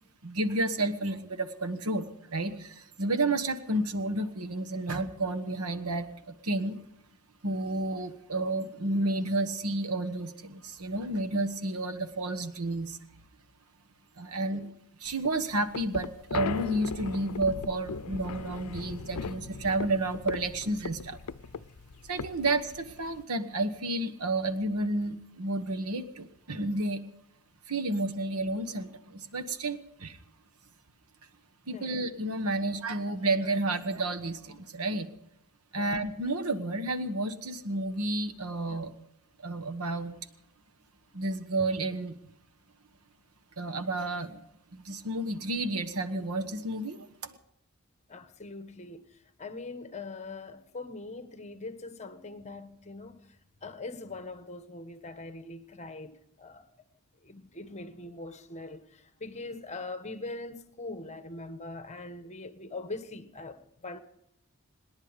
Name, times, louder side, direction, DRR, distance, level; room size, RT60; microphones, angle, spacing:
voice 1, 0.2-6.1 6.4-6.8 7.4-13.0 14.2-14.6 15.0-21.2 22.1-27.0 27.7-30.2 31.7-35.1 35.7-38.9 39.4-40.1 41.1-42.2 43.6-44.4 44.7-47.1, right 2 dB, 85° right, 1.3 m, -31 dB
sound 1, 15.1-23.2, left 5 dB, 90° left, 0.6 m, -38 dB
voice 2, 48.1-56.7 57.2-64.0, left 2 dB, 30° left, 1.2 m, -42 dB
26.5 x 10.5 x 5.2 m
head